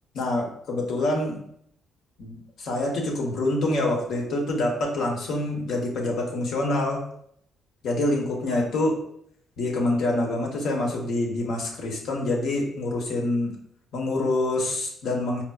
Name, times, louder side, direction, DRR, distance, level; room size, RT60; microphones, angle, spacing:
voice 1, 0.1-1.4 2.2-7.0 7.8-9.0 9.6-13.5 13.9-15.4, left 2 dB, 75° left, 0 dB, 0.8 m, -26 dB
4.1 x 2.0 x 2.2 m, 0.68 s
cardioid pair, 90°, 0 cm